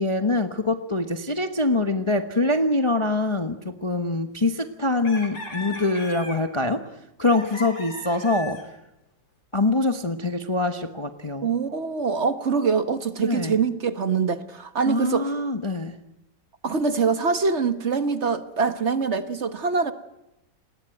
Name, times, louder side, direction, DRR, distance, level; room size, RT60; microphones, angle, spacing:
voice 1, 0.0-6.8 7.2-8.6 9.5-11.5 13.2-13.5 14.9-15.9, left 2 dB, 20° left, 1.0 m, -24 dB
sound 1, 5.0-6.5 7.3-8.7, left 2 dB, 65° left, 4.3 m, -37 dB
voice 2, 11.4-15.3 16.6-19.9, right 5 dB, 40° right, 1.4 m, -24 dB
29.0 x 20.5 x 9.2 m
omnidirectional pair, 2.0 m